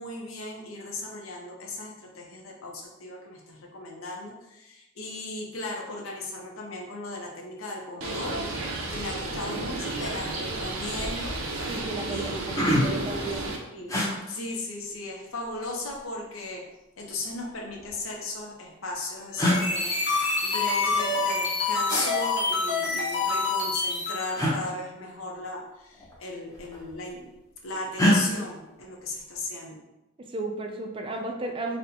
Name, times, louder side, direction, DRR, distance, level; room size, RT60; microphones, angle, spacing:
voice 1, 0.0-8.4 8.9-11.7 12.1-12.5 13.7-14.0 14.3-16.6 17.0-27.3 27.6-29.8, left 2 dB, 80° left, 0 dB, 0.7 m, -37 dB
Bird, 8.0-13.6, right 2 dB, 85° right, 0.5 m, -32 dB
sound 1, 10.2-10.4 10.8-11.2 11.8-11.9 12.2-13.1 13.9-14.1 15.3-16.0 17.1-18.0 18.9-19.0 19.4-19.6 21.9-22.1 24.3-24.6 25.9-26.2 26.5-27.1 28.0-28.2, left 1 dB, 15° left, 0.6 m, -25 dB
voice 2, 11.7-12.3 12.8-13.5 30.2-31.8, right 2 dB, 25° right, 3 dB, 0.3 m, -33 dB
sound 2, 19.3-24.3, left 3 dB, 55° left, 0.9 m, -27 dB
4.1 x 2.1 x 2.7 m, 0.96 s
head